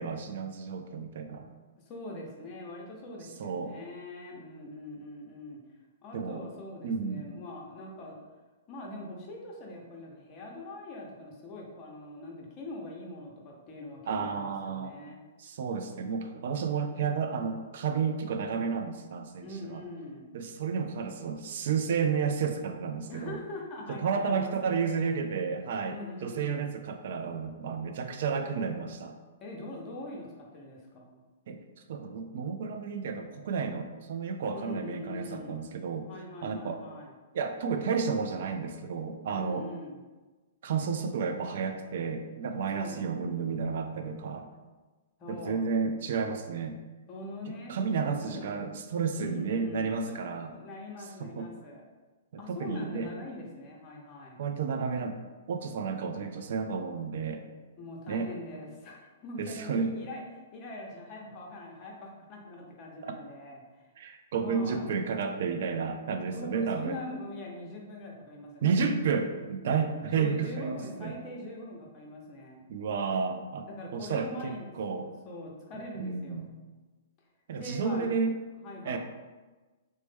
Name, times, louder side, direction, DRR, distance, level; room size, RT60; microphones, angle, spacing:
voice 1, 0.0-1.5 3.4-3.7 6.1-6.4 6.8-7.2 14.1-14.9 15.4-19.8 20.3-23.4 23.9-26.0 26.2-29.1 31.5-31.6 31.9-36.1 36.4-36.8 37.3-39.6 40.6-44.5 45.3-46.8 47.5-50.5 51.2-51.5 52.3-53.1 54.4-55.2 55.5-57.4 58.1-58.3 59.4-59.9 63.0-63.1 64.0-67.0 68.6-71.1 72.7-73.7 73.9-75.1 75.9-76.5 77.5-78.3 78.8-79.0, right 5 dB, 60° right, 6 dB, 0.3 m, -31 dB
voice 2, 1.9-5.6 6.0-8.2 8.7-15.2 19.4-20.3 23.1-24.8 25.8-26.7 29.4-31.2 34.5-35.7 36.1-37.1 39.3-40.0 42.7-43.1 45.2-45.7 47.1-48.7 49.1-50.2 50.5-51.8 52.4-54.4 57.8-60.2 60.5-63.6 64.4-65.0 66.3-69.1 69.6-72.6 73.6-74.7 75.0-76.6 77.5-78.2 78.6-79.0, left 1 dB, 35° left, -1 dB, 0.7 m, -43 dB
3.0 x 2.1 x 3.3 m, 1.3 s
hypercardioid pair, 130°, 0 cm